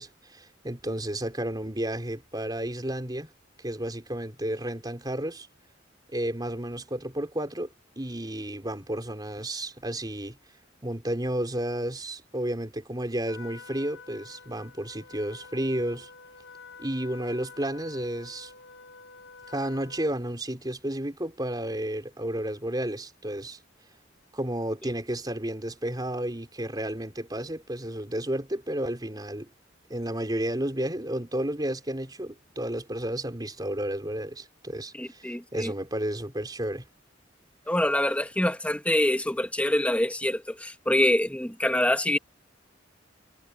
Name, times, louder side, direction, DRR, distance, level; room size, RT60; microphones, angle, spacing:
voice 1, 0.0-3.3 3.6-5.5 6.1-7.7 8.0-10.4 10.8-16.1 16.8-18.5 19.5-23.6 24.3-29.5 29.9-36.8, right 1 dB, 20° right, 4.1 m, -32 dB
Trumpet, 13.3-20.2, left 5 dB, 80° left, 6.4 m, -48 dB
voice 2, 34.9-35.7 37.7-42.2, left 1 dB, 5° left, 2.0 m, -25 dB
head